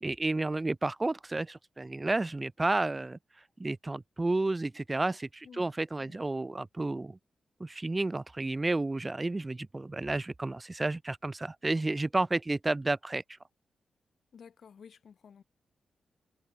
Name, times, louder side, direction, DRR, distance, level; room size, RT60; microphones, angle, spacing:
voice 1, 0.0-3.2 3.6-7.2 7.6-13.2, right 2 dB, 25° right, 0.4 m, -31 dB
voice 2, 14.3-15.4, left 7 dB, 65° left, 6.5 m, -53 dB
supercardioid pair, 45°, 0 cm